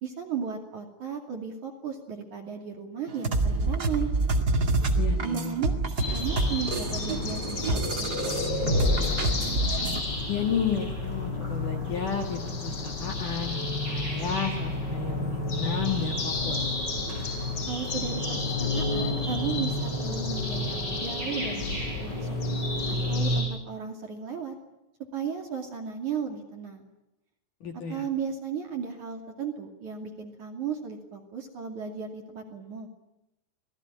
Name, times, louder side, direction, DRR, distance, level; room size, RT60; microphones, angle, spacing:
voice 1, 0.0-4.1 5.2-5.8 6.1-7.9 8.1-8.8 17.7-22.4 22.9-24.5 25.1-26.9 27.9-32.9, right 7 dB, 45° right, 2 dB, 3.1 m, -35 dB
sound 1, 3.1-10.0, right 2 dB, 80° right, 0.8 m, -27 dB
voice 2, 5.0-5.5 10.3-13.6 13.8-16.7 27.6-28.0, left 6 dB, 55° left, 3 dB, 2.6 m, -32 dB
sound 2, 6.0-23.4, left 2 dB, 20° left, 6.7 m, -30 dB
27.0 x 20.0 x 9.9 m, 0.91 s
omnidirectional pair, 5.9 m